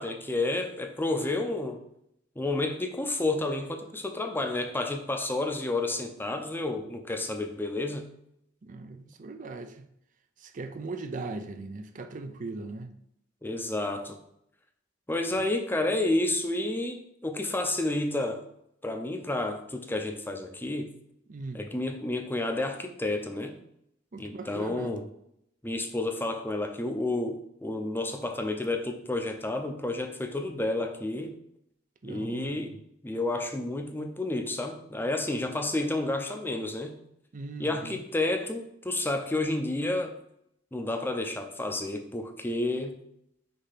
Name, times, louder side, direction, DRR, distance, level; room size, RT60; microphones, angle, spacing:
voice 1, 0.0-1.8 2.4-8.1 13.4-14.2 15.1-18.4 18.8-20.9 21.5-23.5 24.2-25.0 25.6-31.3 32.0-32.8 33.0-37.0 37.6-40.1 40.7-43.0, left 2 dB, 10° left, 5 dB, 0.6 m, -30 dB
voice 2, 8.6-9.8 10.4-12.9 21.3-21.6 24.1-25.0 32.0-32.6 37.3-37.9, right 3 dB, 45° right, 8 dB, 0.5 m, -39 dB
6.5 x 2.8 x 5.8 m, 0.75 s
head